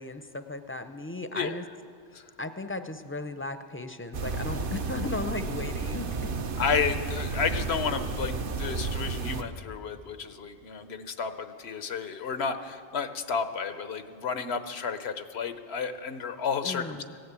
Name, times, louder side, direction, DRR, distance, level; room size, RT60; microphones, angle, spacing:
voice 1, 0.0-1.6 2.1-6.3 16.6-17.1, left 2 dB, 15° left, 9 dB, 0.5 m, -36 dB
sound 1, 4.1-9.4, right 4 dB, 60° right, 1.0 m, -32 dB
voice 2, 6.6-17.0, left 6 dB, 85° left, 10 dB, 1.1 m, -32 dB
16.5 x 10.0 x 8.2 m, 2.3 s
omnidirectional pair, 1.0 m